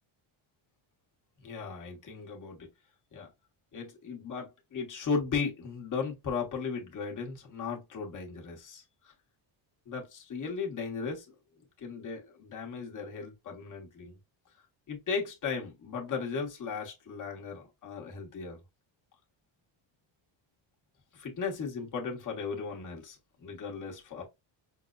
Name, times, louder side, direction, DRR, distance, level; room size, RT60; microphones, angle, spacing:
voice 1, 1.4-2.7 3.1-3.3 3.7-9.1 9.9-11.3 11.8-14.1 14.9-18.6 21.1-24.2, left 5 dB, 40° left, 1.2 m, -36 dB
5.8 x 2.1 x 2.4 m
cardioid pair, 165°, 50 cm